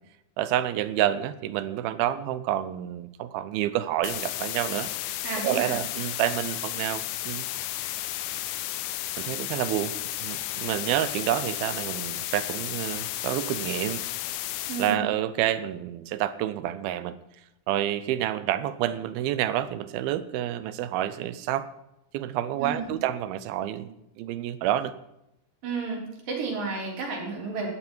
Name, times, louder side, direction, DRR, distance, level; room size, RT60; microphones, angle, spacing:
voice 1, 0.4-4.9 5.4-7.5 9.2-14.0 14.8-17.2 17.7-21.7 22.1-24.9, right 12 dB, 80° right, 13 dB, 2.6 m, -28 dB
sound 1, 4.0-15.0, left 14 dB, 90° left, 1.7 m, -33 dB
voice 2, 5.2-5.8 14.6-15.1 22.6-22.9 25.6-27.7, right 4 dB, 65° right, -2 dB, 5.2 m, -32 dB
17.5 x 12.5 x 4.5 m, 0.85 s
omnidirectional pair, 4.4 m